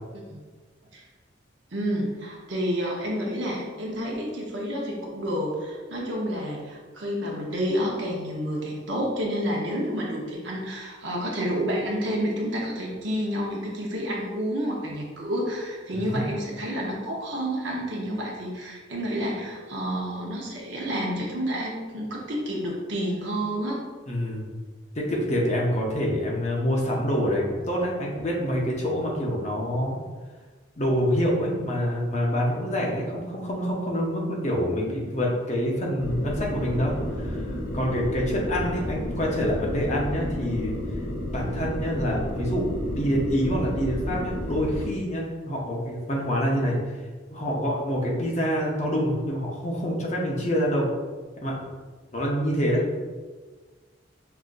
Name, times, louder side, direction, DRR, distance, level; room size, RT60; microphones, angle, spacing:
voice 1, 1.7-23.8, equal, 70° right, -2 dB, 0.9 m, -29 dB
voice 2, 15.9-16.3 24.1-24.5 24.9-30.0 30.8-40.8 41.3-46.8 47.3-50.9 51.4-51.6 52.1-52.9, equal, 35° left, -2 dB, 0.7 m, -26 dB
sound 1, 36.0-44.9, left 1 dB, 75° left, 0.7 m, -31 dB
5.6 x 2.5 x 2.5 m, 1.4 s
head